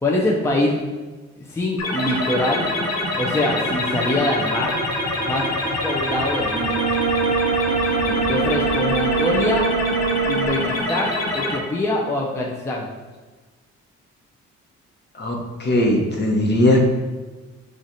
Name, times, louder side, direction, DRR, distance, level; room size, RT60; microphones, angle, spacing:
voice 1, 0.0-0.9 1.4-2.7 3.2-4.8 5.2-5.5 5.8-6.8 8.3-9.7 10.3-12.9, left 1 dB, 10° left, -2 dB, 0.5 m, -24 dB
sound 1, 1.8-11.6, left 1 dB, 55° left, 1.3 m, -25 dB
Brass instrument, 6.5-10.9, right 6 dB, 75° right, 0.6 m, -24 dB
voice 2, 15.2-16.8, left 1 dB, 35° left, 0 dB, 1.0 m, -19 dB
4.8 x 2.5 x 4.1 m, 1.3 s
cardioid pair, 90°, 30 cm